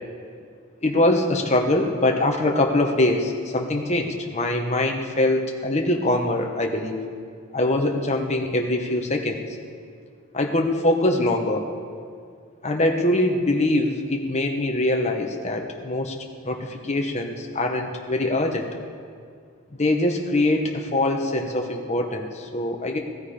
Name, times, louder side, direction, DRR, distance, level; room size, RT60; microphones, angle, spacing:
voice 1, 0.8-7.0 7.5-9.5 10.3-11.7 12.6-16.2 16.4-18.7 19.8-23.0, left 1 dB, 30° left, 2 dB, 1.2 m, -23 dB
18.0 x 14.0 x 5.0 m, 2.2 s
head